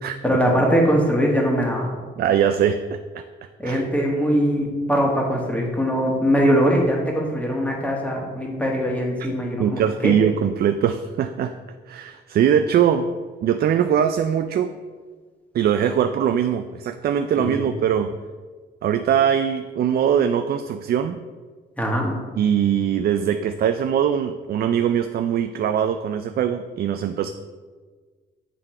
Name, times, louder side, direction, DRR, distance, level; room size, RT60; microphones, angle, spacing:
voice 1, 0.2-1.9 3.6-10.1 17.4-17.6 21.8-22.1, equal, 5° left, -1 dB, 1.6 m, -21 dB
voice 2, 2.2-3.2 3.6-3.8 9.6-11.6 11.9-13.1 13.4-14.7 15.5-18.1 18.8-21.2 22.4-27.3, right 8 dB, 50° right, 8 dB, 0.4 m, -21 dB
8.3 x 3.7 x 4.4 m, 1.5 s
cardioid pair, 90°, 20 cm